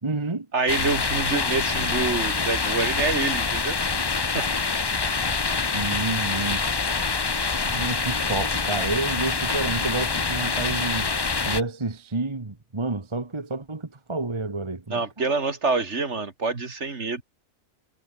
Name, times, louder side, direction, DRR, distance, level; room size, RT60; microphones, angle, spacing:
voice 1, 0.0-0.5 5.5-6.6 7.6-11.1 11.4-15.0, right 3 dB, 20° right, 1.3 m, -29 dB
voice 2, 0.5-3.8 4.2-4.5 14.9-17.2, right 4 dB, 50° right, 2.5 m, -26 dB
sound 1, 0.7-11.6, left 4 dB, 35° left, 0.4 m, -25 dB
omnidirectional pair, 1.6 m